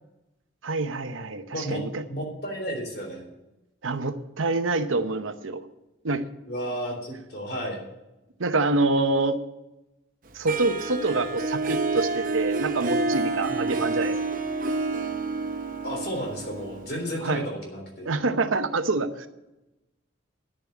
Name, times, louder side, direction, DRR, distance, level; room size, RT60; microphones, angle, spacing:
voice 1, 0.6-2.0 3.8-5.6 6.0-6.2 8.4-9.4 10.3-14.2 17.2-17.4 18.0-19.3, right 3 dB, 90° right, 9 dB, 0.9 m, -26 dB
voice 2, 1.5-3.3 6.5-7.8 13.5-13.7 15.8-18.1, equal, 55° left, 1 dB, 3.6 m, -33 dB
Harp, 10.5-17.4, right 3 dB, 45° right, 0.7 m, -29 dB
10.5 x 7.1 x 9.2 m, 0.98 s
head